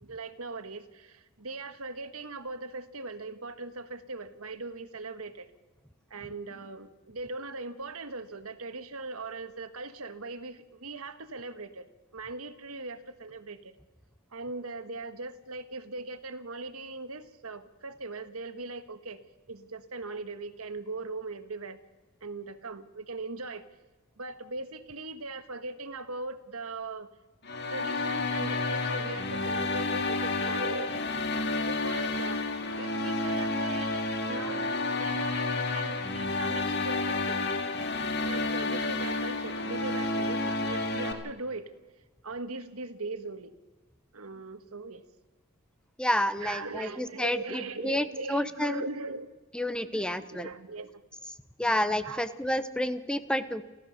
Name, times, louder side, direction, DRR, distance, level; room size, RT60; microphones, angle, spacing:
voice 1, 0.0-5.5 6.1-11.9 12.1-13.7 14.3-19.2 19.5-21.8 22.2-23.7 24.2-27.1 27.7-31.1 31.7-32.4 32.8-37.4 38.2-41.7 42.2-43.5 44.1-45.0 46.4-49.3 49.8-51.0 52.0-52.3, right 3 dB, 85° right, 10 dB, 1.5 m, -40 dB
sound 1, 27.4-41.1, left 2 dB, 50° left, 2.1 m, -30 dB
voice 2, 46.0-48.8 49.5-50.5 51.6-53.6, left 1 dB, 5° left, 12 dB, 0.8 m, -30 dB
30.0 x 13.0 x 6.5 m, 1.2 s
head